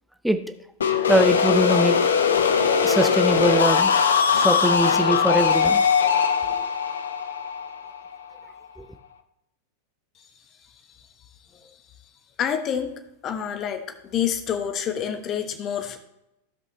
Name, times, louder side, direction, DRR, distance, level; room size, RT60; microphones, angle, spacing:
sound 1, 0.8-8.5, left 6 dB, 70° left, 0.7 m, -21 dB
voice 1, 1.1-1.9 2.8-3.9 4.3-5.8, equal, ahead, 7 dB, 0.7 m, -22 dB
voice 2, 12.4-12.9 13.2-13.8 14.1-16.0, left 8 dB, 30° left, 7 dB, 1.1 m, -27 dB
15.5 x 5.4 x 3.1 m, 0.86 s
figure-of-eight pair, 90°, 0 cm